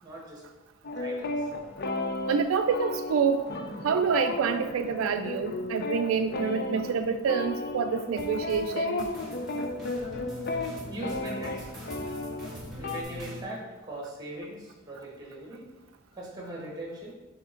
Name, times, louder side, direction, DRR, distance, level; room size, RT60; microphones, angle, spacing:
voice 1, 0.0-0.4 1.0-1.4 10.9-11.7 12.8-15.7 16.1-17.2, right 1 dB, 20° right, -2 dB, 1.6 m, -40 dB
sound 1, 0.8-13.0, left 2 dB, 55° left, 0.5 m, -34 dB
sound 2, 1.2-8.6, left 1 dB, 70° left, 0.9 m, -50 dB
voice 2, 2.3-3.4 3.8-9.1, right 6 dB, 85° right, 8 dB, 0.3 m, -27 dB
sound 3, 8.2-13.4, equal, ahead, 1.9 m, -43 dB
5.0 x 4.5 x 4.4 m, 1.1 s
head